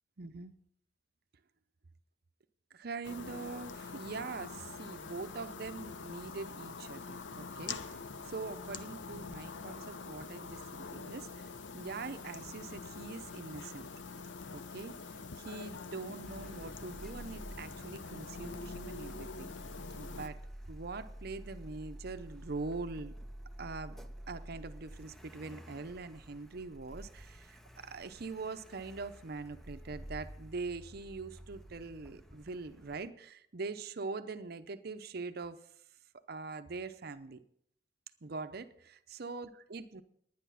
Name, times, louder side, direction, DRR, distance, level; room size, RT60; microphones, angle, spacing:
voice 1, 0.2-0.5 2.7-10.6 10.9-13.9 14.5-19.5 20.0-20.4 20.7-23.1 23.6-24.0 24.3-35.6 36.3-37.4 38.2-40.0, right 3 dB, 60° right, 10 dB, 0.7 m, -43 dB
sound 1, 3.0-20.3, left 4 dB, 80° left, 0.7 m, -45 dB
Car, 16.2-33.1, equal, ahead, 0.6 m, -50 dB
10.5 x 10.0 x 5.7 m, 0.69 s
head